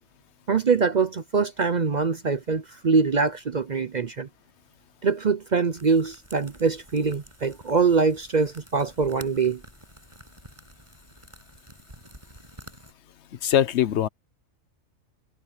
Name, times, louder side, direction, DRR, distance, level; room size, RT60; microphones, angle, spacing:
voice 1, 0.5-4.3 5.0-9.6, right 5 dB, 45° right, 0.6 m, -23 dB
sound 1, 5.8-12.9, right 1 dB, 20° right, 6.8 m, -49 dB
voice 2, 13.3-14.1, left 10 dB, 60° left, 1.0 m, -22 dB
omnidirectional pair, 1.4 m